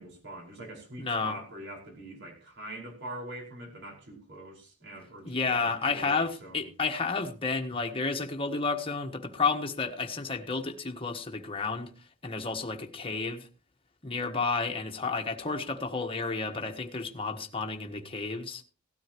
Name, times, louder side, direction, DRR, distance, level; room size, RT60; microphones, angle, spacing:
voice 1, 0.0-6.6, right 1 dB, 55° right, 5.2 m, -43 dB
voice 2, 1.0-1.4 5.2-13.5 14.0-18.6, left 4 dB, 25° left, 1.4 m, -31 dB
18.0 x 13.0 x 3.0 m
head